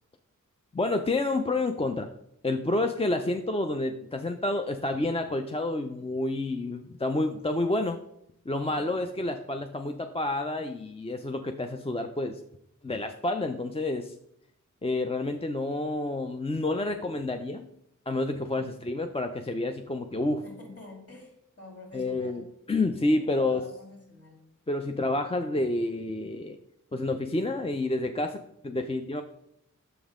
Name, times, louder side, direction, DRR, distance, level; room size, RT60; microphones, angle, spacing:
voice 1, 0.7-2.1 2.4-8.0 8.5-12.4 12.8-14.1 14.8-17.7 18.1-20.4 21.9-22.4 22.7-23.6 24.7-26.6 26.9-29.2, left 2 dB, 20° left, 6 dB, 0.5 m, -29 dB
voice 2, 8.6-9.0 18.5-18.9 20.4-22.5 23.1-24.4 28.7-29.0, left 2 dB, 50° left, -2 dB, 2.9 m, -48 dB
7.0 x 5.3 x 3.7 m, 0.75 s
wide cardioid pair, 55°, 32 cm